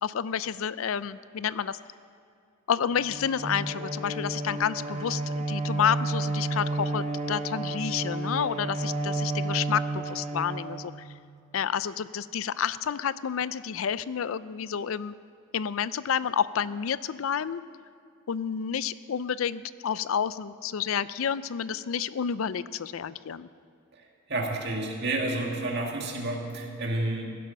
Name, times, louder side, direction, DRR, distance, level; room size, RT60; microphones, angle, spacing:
voice 1, 0.0-1.8 2.7-10.9 11.5-15.1 15.5-17.6 18.3-23.5, left 8 dB, 90° left, 16 dB, 0.4 m, -30 dB
Bowed string instrument, 3.0-11.4, right 2 dB, 35° right, 0.8 m, -31 dB
voice 2, 24.3-27.4, right 2 dB, 55° right, 0 dB, 2.1 m, -30 dB
15.5 x 11.0 x 6.3 m, 2.3 s
head